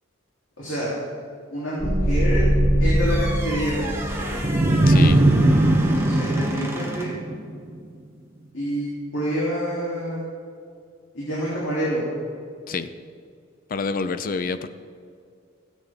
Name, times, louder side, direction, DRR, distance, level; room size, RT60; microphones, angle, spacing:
voice 1, 0.6-0.9 1.5-2.5 2.8-4.4 5.7-7.1 8.5-10.2 11.1-12.1, equal, 75° left, -8 dB, 3.1 m, -28 dB
sound 1, 1.8-4.9, equal, 10° left, 2.2 m, -22 dB
sound 2, 2.8-7.3, right 2 dB, 15° right, 1.2 m, -35 dB
sound 3, 4.4-7.7, right 1 dB, 30° right, 0.8 m, -19 dB
voice 2, 4.9-5.2 12.7-12.9 13.7-14.7, left 4 dB, 45° left, 12 dB, 0.5 m, -27 dB
17.0 x 8.3 x 3.6 m, 2.2 s
head